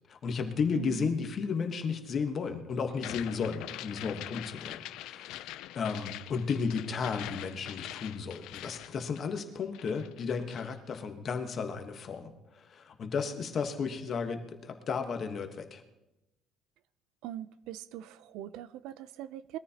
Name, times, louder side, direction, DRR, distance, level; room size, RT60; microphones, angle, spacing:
voice 1, 0.1-5.5 5.7-15.8, left 5 dB, 35° left, 6 dB, 1.2 m, -34 dB
voice 2, 0.7-1.1 17.2-19.6, right 11 dB, 70° right, 15 dB, 0.5 m, -41 dB
sound 1, 2.9-9.5 9.7-10.7, left 14 dB, 70° left, 0.4 m, -43 dB
21.5 x 13.5 x 2.9 m, 0.96 s
cardioid pair, 165°, 0 cm